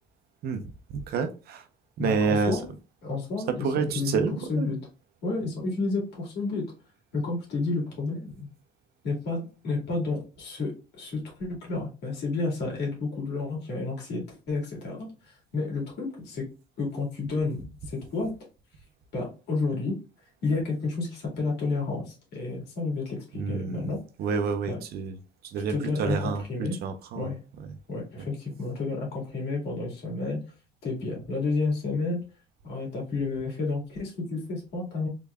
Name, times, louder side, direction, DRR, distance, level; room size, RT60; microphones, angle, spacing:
voice 1, 0.4-1.6 2.0-2.6 3.6-4.7 23.4-23.9 24.2-25.2 25.4-27.3, right 5 dB, 70° right, 8 dB, 0.7 m, -29 dB
voice 2, 2.0-2.7 3.0-4.2 4.5-4.8 5.2-6.6 7.1-8.5 9.0-16.4 16.8-18.3 19.1-20.0 20.4-24.0 24.7-24.8 25.7-26.8 27.1-27.4 27.9-30.4 30.8-32.2 32.6-35.1, left 3 dB, 75° left, -2 dB, 2.1 m, -31 dB
3.8 x 3.4 x 2.3 m, 0.33 s
cardioid pair, 110°, 17 cm